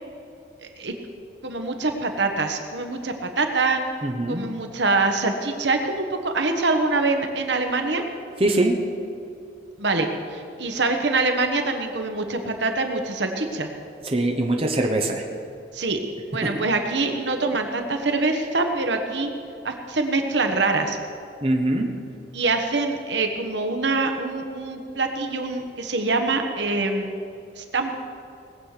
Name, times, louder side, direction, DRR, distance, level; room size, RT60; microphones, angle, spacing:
voice 1, 1.4-3.8 4.3-8.0 9.8-13.7 15.7-16.0 16.3-19.3 19.6-21.0 22.3-27.1 27.6-28.0, right 3 dB, 70° right, 5 dB, 1.3 m, -24 dB
voice 2, 4.0-4.4 8.4-8.8 14.0-15.2 16.4-16.5 21.4-21.9, right 1 dB, 30° right, 2 dB, 1.1 m, -22 dB
19.5 x 7.7 x 6.7 m, 2.6 s
head